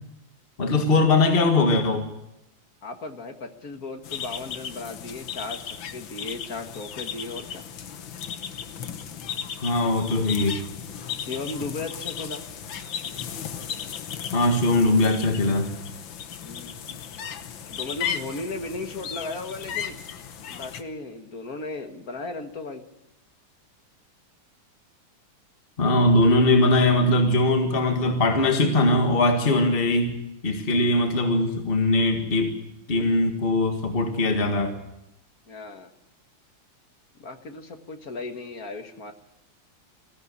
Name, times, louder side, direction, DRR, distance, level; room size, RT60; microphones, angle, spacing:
voice 1, 0.6-2.1 9.6-10.6 14.3-15.7 25.8-30.1 30.4-32.5 32.9-34.7, left 2 dB, 30° left, 4 dB, 1.9 m, -21 dB
voice 2, 2.8-7.6 11.2-12.4 16.4-16.8 17.7-20.0 20.5-22.8 35.5-35.9 37.2-39.1, left 3 dB, 50° left, 6 dB, 2.0 m, -36 dB
sound 1, 4.0-20.8, left 8 dB, 75° left, 1.9 m, -35 dB
20.5 x 15.5 x 9.7 m, 0.87 s
omnidirectional pair, 2.1 m